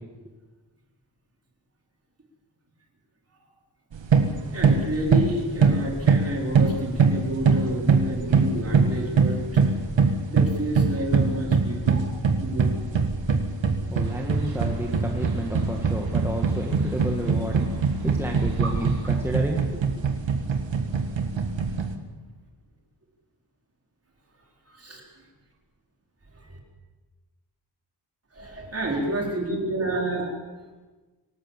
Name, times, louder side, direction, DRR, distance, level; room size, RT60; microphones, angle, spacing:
sound 1, 3.9-22.0, right 5 dB, 90° right, 1.9 m, -23 dB
voice 1, 4.5-9.7 10.0-12.0 12.4-12.7 18.6-18.7 24.7-25.1 26.3-26.6 28.3-30.3, right 1 dB, 35° right, -1 dB, 4.5 m, -30 dB
voice 2, 13.9-19.8, equal, 5° right, 0 dB, 1.8 m, -31 dB
sound 2, 14.0-19.2, right 3 dB, 60° right, 3.4 m, -40 dB
24.5 x 18.0 x 7.5 m, 1.3 s
wide cardioid pair, 180°, 44 cm